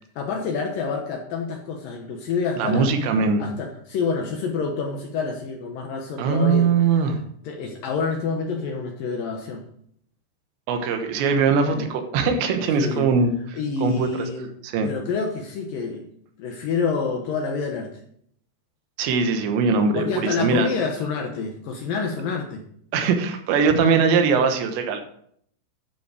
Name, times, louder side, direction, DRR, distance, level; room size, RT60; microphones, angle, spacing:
voice 1, 0.2-2.9 3.4-6.7 7.4-9.6 11.7-12.0 12.8-13.1 13.5-14.5 14.8-16.1 16.4-17.9 20.0-22.6, left 5 dB, 75° left, 2 dB, 2.1 m, -28 dB
voice 2, 2.6-3.4 6.2-7.2 10.7-13.3 13.8-14.3 14.6-14.9 19.0-20.7 22.9-25.0, right 5 dB, 75° right, 6 dB, 3.3 m, -21 dB
11.0 x 7.1 x 4.9 m, 0.65 s
omnidirectional pair, 5.4 m